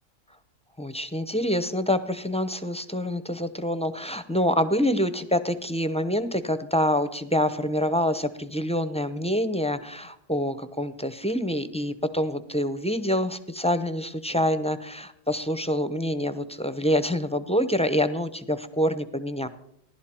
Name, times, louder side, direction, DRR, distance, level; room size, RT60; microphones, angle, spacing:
voice 1, 0.8-19.5, equal, 5° left, 11 dB, 0.5 m, -26 dB
17.5 x 11.5 x 4.4 m, 0.76 s
omnidirectional pair, 1.3 m